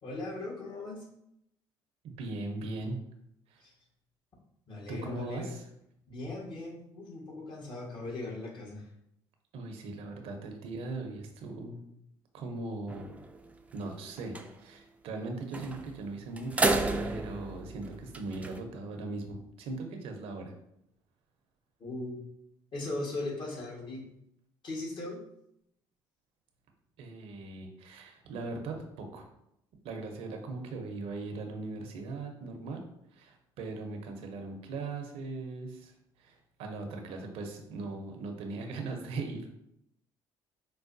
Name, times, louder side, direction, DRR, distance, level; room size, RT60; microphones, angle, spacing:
voice 1, 0.0-1.1 3.6-3.7 4.7-5.6 6.1-8.9 21.8-22.2 22.7-24.0 24.6-25.2, left 2 dB, 50° left, -3 dB, 1.3 m, -38 dB
voice 2, 2.0-3.0 3.5-3.6 4.9-5.6 9.5-11.8 12.3-13.1 13.7-20.5 27.0-29.3 29.8-32.8 33.1-35.9 36.2-39.4, right 3 dB, 75° right, 4 dB, 0.6 m, -39 dB
sound 1, 12.9-13.4 13.8-13.9 14.2-14.5 15.5-16.0 16.4-18.6, right 2 dB, 15° right, 0.3 m, -31 dB
4.6 x 2.2 x 2.5 m, 0.78 s
supercardioid pair, 80°, 10 cm